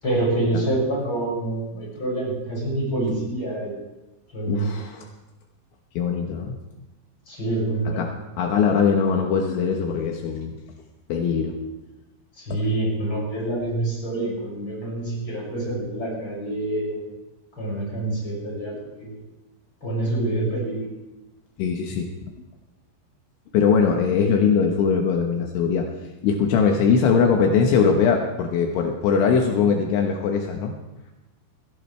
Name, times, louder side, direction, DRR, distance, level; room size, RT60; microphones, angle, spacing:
voice 1, 0.0-3.7 4.3-4.7 7.3-8.1 12.4-17.0 17.6-18.7 19.0-19.1 19.8-20.9, right 2 dB, 25° left, -5 dB, 7.4 m, -26 dB
voice 2, 4.5-5.1 6.0-6.6 8.0-10.5 11.1-11.6 21.6-22.1 23.5-25.9 26.2-30.7, left 6 dB, 75° left, 2 dB, 3.6 m, -21 dB
22.0 x 16.5 x 3.4 m, 1.0 s
omnidirectional pair, 5.7 m